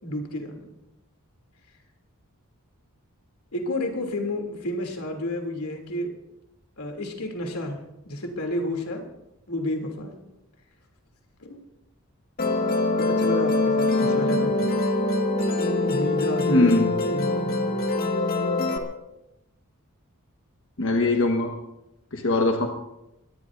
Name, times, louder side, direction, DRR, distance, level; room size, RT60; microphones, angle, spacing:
voice 1, 0.0-0.6 3.5-6.1 6.8-9.0 9.5-10.2 11.4-11.6 13.0-14.7 15.8-16.7 17.1-17.8, left 1 dB, 85° left, 3 dB, 3.0 m, -31 dB
Musical instrument, 12.4-18.8, left 2 dB, 45° left, 1.8 m, -23 dB
voice 2, 16.5-16.9 20.8-21.5 22.1-22.7, left 2 dB, 60° left, 2 dB, 1.4 m, -21 dB
23.5 x 18.5 x 2.7 m, 0.90 s
head